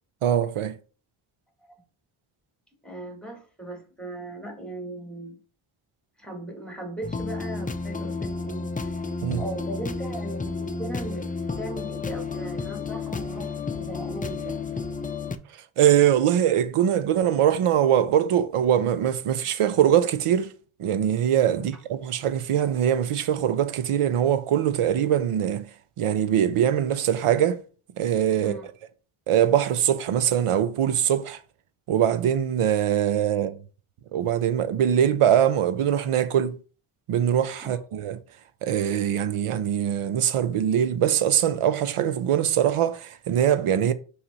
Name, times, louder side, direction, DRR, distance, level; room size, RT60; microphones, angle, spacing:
voice 1, 0.2-0.7 9.2-9.4 15.8-20.5 20.8-25.7 26.0-27.6 28.0-28.6 29.3-31.4 31.9-33.6 34.1-36.6 37.1-38.2 38.6-43.9, right 10 dB, 90° right, 0.7 m, -22 dB
voice 2, 2.8-5.4 6.2-8.9 9.3-11.3 11.6-14.9 21.6-21.7 28.4-28.7 37.6-37.8, right 1 dB, ahead, 1.5 m, -38 dB
sound 1, 7.0-15.4, left 4 dB, 20° left, 0.4 m, -31 dB
5.7 x 3.2 x 5.4 m
wide cardioid pair, 110°, 49 cm